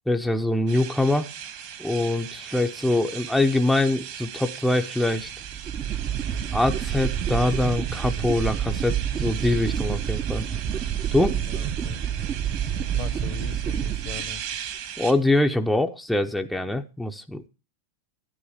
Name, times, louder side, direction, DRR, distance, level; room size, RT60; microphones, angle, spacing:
voice 1, 0.1-1.3 1.8-5.3 6.5-10.4 11.1-11.4 15.0-17.5, left 2 dB, ahead, 4 dB, 0.7 m, -24 dB
sound 1, 0.7-15.1, right 9 dB, 60° right, 2.1 m, -38 dB
sound 2, 5.2-14.7, right 9 dB, 35° right, 0.8 m, -28 dB
voice 2, 11.4-12.0 12.8-14.4, left 7 dB, 45° left, 15 dB, 1.1 m, -39 dB
11.5 x 10.0 x 5.0 m, 0.32 s
hypercardioid pair, 110°, 0 cm